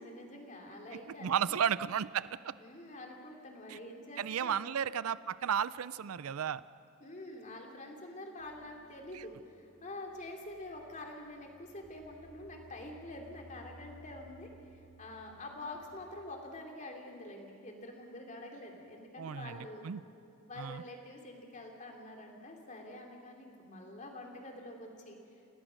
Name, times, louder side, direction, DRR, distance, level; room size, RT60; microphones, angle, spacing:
voice 1, 0.0-1.6 2.6-4.7 7.0-14.5 15.0-19.8 20.5-25.2, left 1 dB, 35° left, 2 dB, 3.1 m, -46 dB
voice 2, 1.2-2.5 3.7-3.8 4.2-6.6 9.1-9.2 19.2-20.0 20.6-20.8, right 8 dB, 80° right, 17 dB, 0.5 m, -33 dB
sound 1, 8.4-16.2, right 2 dB, 15° left, 2.3 m, -59 dB
29.0 x 18.0 x 6.4 m, 2.7 s
head